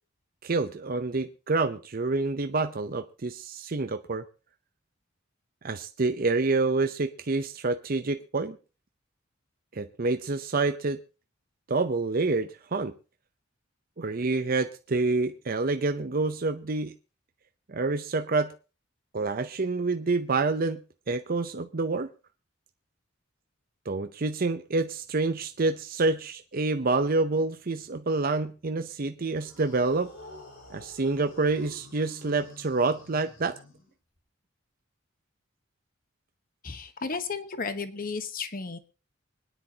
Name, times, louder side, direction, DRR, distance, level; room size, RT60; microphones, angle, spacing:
voice 1, 0.4-4.2 5.6-8.6 9.7-11.0 11.7-12.9 14.0-16.9 17.7-18.5 19.1-20.8 21.1-22.1 23.9-30.1 30.7-33.6, right 3 dB, 45° right, 8 dB, 0.7 m, -27 dB
sound 1, 29.4-34.2, left 1 dB, 85° left, 5.5 m, -49 dB
voice 2, 36.6-38.8, left 4 dB, 45° left, 11 dB, 1.1 m, -33 dB
25.0 x 10.0 x 2.9 m, 0.34 s
head